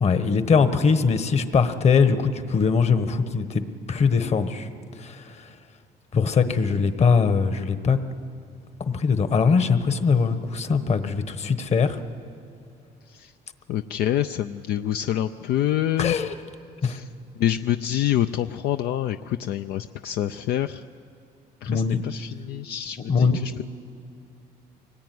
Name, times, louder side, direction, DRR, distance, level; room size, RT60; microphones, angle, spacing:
voice 1, 0.0-3.6 3.9-4.7 5.0-5.5 6.1-8.0 8.9-12.0 16.0-16.3 16.8-17.0 21.7-22.0 23.1-23.4, left 5 dB, 40° left, 10 dB, 1.3 m, -21 dB
voice 2, 13.7-16.2 16.8-17.1 17.4-20.8 21.6-23.6, left 11 dB, 70° left, 9 dB, 0.5 m, -26 dB
24.0 x 19.0 x 9.5 m, 2.4 s
cardioid pair, 110°, 17 cm